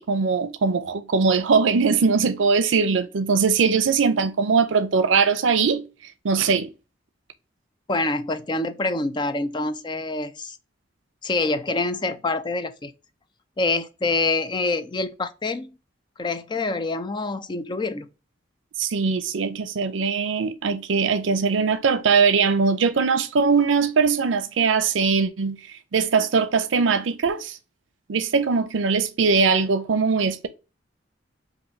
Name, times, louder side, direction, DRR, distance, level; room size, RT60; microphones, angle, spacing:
voice 1, 0.0-5.8 6.2-6.7 18.8-27.6 28.1-30.5, right 5 dB, 85° right, 0.5 m, -21 dB
voice 2, 7.9-10.6 11.2-12.9 13.6-15.7 16.2-18.1, left 3 dB, 25° left, 0.4 m, -26 dB
5.4 x 2.6 x 2.6 m
head